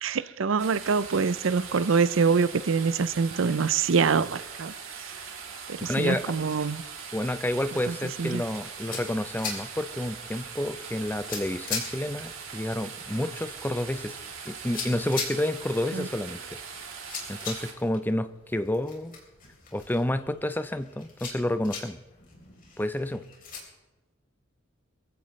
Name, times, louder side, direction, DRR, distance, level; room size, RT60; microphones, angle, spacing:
voice 1, 0.0-4.7 5.7-6.8 7.9-8.4 15.9-16.1, right 5 dB, 65° right, 0.5 m, -25 dB
sound 1, 0.6-17.7, right 6 dB, 85° right, 3.0 m, -41 dB
voice 2, 5.8-6.3 7.1-14.2 14.5-16.4 17.3-19.2 19.7-22.0 22.8-23.2, left 1 dB, 10° left, 0.6 m, -29 dB
sound 2, 8.5-23.6, left 5 dB, 45° left, 3.9 m, -41 dB
23.0 x 15.5 x 3.2 m
head